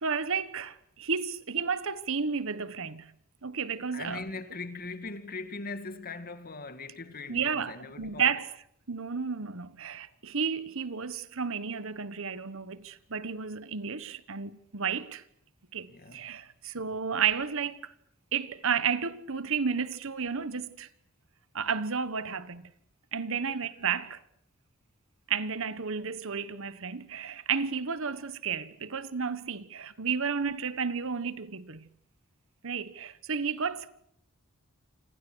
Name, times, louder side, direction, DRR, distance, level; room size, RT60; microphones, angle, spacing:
voice 1, 0.0-3.1 3.4-4.2 7.3-8.5 8.9-15.2 15.7-17.9 18.3-20.9 21.5-22.7 23.1-24.2 25.3-31.9 32.6-33.9, right 6 dB, 65° right, 1.3 m, -32 dB
voice 2, 3.9-8.4 15.9-16.4 23.4-23.5, left 3 dB, 45° left, 2.2 m, -40 dB
28.5 x 26.0 x 6.4 m
head